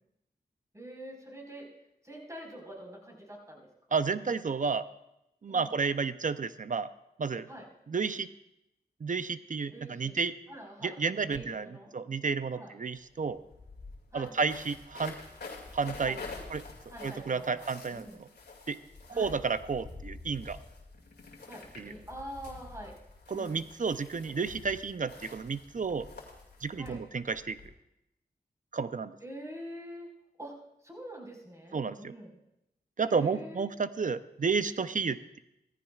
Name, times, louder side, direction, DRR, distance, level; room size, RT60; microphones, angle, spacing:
voice 1, 0.7-1.7 2.0-3.7 5.5-5.7 7.5-7.7 9.7-10.2 10.5-11.9 12.6-12.7 14.1-14.3 16.0-16.5 16.9-18.2 19.1-19.3 21.4-22.9 23.3-23.7 26.7-27.0 29.2-30.1 30.4-30.5 30.8-32.3 33.0-33.6, equal, 20° right, -1 dB, 4.7 m, -45 dB
voice 2, 3.9-4.8 5.4-6.9 7.2-7.5 7.9-8.3 9.0-10.3 10.8-11.7 11.9-13.4 14.1-15.2 15.7-16.2 16.5-16.6 17.0-18.1 18.7-18.8 19.2-20.6 21.8-21.9 23.3-26.1 26.6-27.6 28.7-29.1 31.7-32.1 33.0-35.4, right 5 dB, 50° right, 13 dB, 0.6 m, -31 dB
sound 1, 12.9-13.0 13.2-27.7, left 3 dB, 90° left, 2.3 m, -48 dB
17.5 x 14.5 x 2.4 m, 0.85 s
cardioid pair, 50°, 17 cm